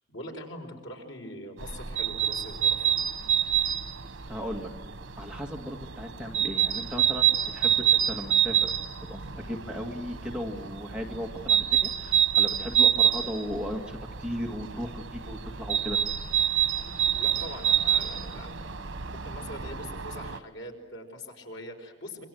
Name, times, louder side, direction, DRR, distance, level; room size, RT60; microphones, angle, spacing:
voice 1, 0.1-3.0 17.1-18.6 19.0-22.3, left 1 dB, 80° left, 3 dB, 5.0 m, -42 dB
sound 1, 1.6-20.4, right 9 dB, 90° right, 1.1 m, -27 dB
voice 2, 4.3-4.7 5.2-8.7 9.1-16.0, equal, 5° right, 1 dB, 2.0 m, -36 dB
28.0 x 25.5 x 7.8 m, 1.2 s
head